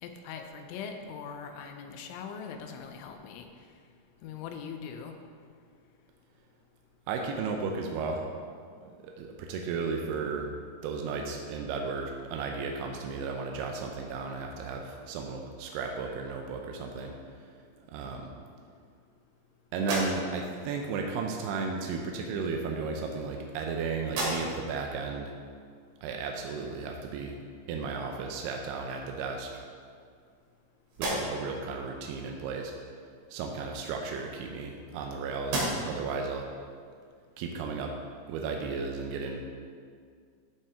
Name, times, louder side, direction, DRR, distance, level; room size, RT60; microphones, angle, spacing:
voice 1, 0.0-3.5 4.2-5.1, left 6 dB, 85° left, 5 dB, 3.1 m, -41 dB
voice 2, 7.1-8.4 8.8-10.5 10.8-17.1 17.8-18.3 19.7-25.3 26.0-27.4 27.7-29.5 31.0-32.7 33.3-36.5 37.4-37.9 38.3-39.5, right 4 dB, 90° right, 2 dB, 2.3 m, -34 dB
sound 1, 19.7-20.6 21.7-21.9 22.8-23.7 24.0-24.8 25.3-25.4 28.0-28.1 28.6-29.2 29.8-30.6 30.9-31.6 33.6-35.1 35.4-36.1, right 1 dB, 70° right, 4.7 m, -36 dB
14.5 x 5.7 x 3.6 m, 2.1 s
omnidirectional pair, 5.5 m